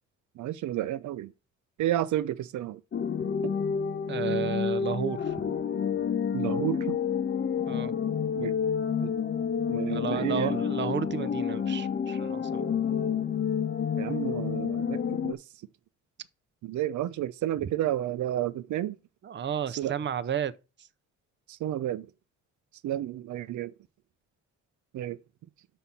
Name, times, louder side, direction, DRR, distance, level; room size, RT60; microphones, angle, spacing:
voice 1, 0.4-1.3 1.8-2.8 3.4-3.5 6.3-7.0 8.4-8.5 9.0-9.1 9.7-10.6 14.0-15.4 16.6-19.0 19.8-19.9 21.5-22.1 22.8-23.7 24.9-25.2, right 13 dB, 75° right, 0.7 m, -31 dB
sound 1, 2.9-15.3, left 7 dB, 35° left, 0.9 m, -29 dB
voice 2, 4.1-5.5 7.7-7.9 9.9-12.7 19.2-20.5, right 8 dB, 35° right, 0.7 m, -32 dB
5.9 x 5.6 x 7.0 m
cardioid pair, 90°, 30 cm